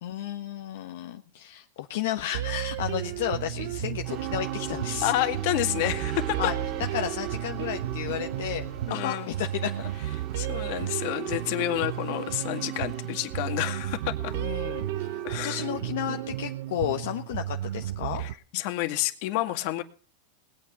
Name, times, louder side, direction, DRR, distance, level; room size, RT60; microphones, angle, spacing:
voice 1, 0.0-5.1 6.4-6.5 6.9-8.6 8.9-9.9 10.6-10.8 11.7-11.8 14.3-18.2, left 11 dB, 70° left, 4 dB, 1.3 m, -33 dB
sound 1, 2.3-18.3, right 13 dB, 70° right, 0.8 m, -33 dB
sound 2, 2.7-8.9, right 6 dB, 85° right, 5.6 m, -42 dB
sound 3, 4.0-18.3, right 9 dB, 40° right, 1.5 m, -40 dB
voice 2, 5.0-6.5 8.9-9.3 10.3-14.3 15.2-15.6 18.2-19.8, left 16 dB, 55° left, 8 dB, 2.1 m, -29 dB
19.5 x 8.7 x 6.9 m, 0.39 s
supercardioid pair, 140°, 0 cm